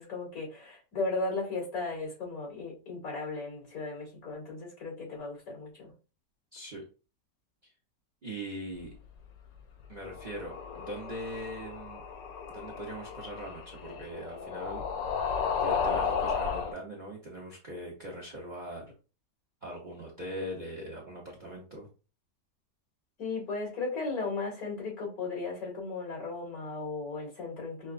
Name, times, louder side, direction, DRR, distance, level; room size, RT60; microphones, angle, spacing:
voice 1, 0.0-5.9 23.2-27.9, left 3 dB, 55° left, 2.8 m, -36 dB
voice 2, 6.5-6.8 7.6-7.7 8.2-8.9 9.9-12.0 12.5-15.1 15.6-18.9 19.6-21.9, right 1 dB, 40° right, 0.7 m, -41 dB
sound 1, 10.0-16.7, left 6 dB, 85° left, 1.5 m, -33 dB
5.6 x 2.3 x 2.4 m
omnidirectional pair, 1.8 m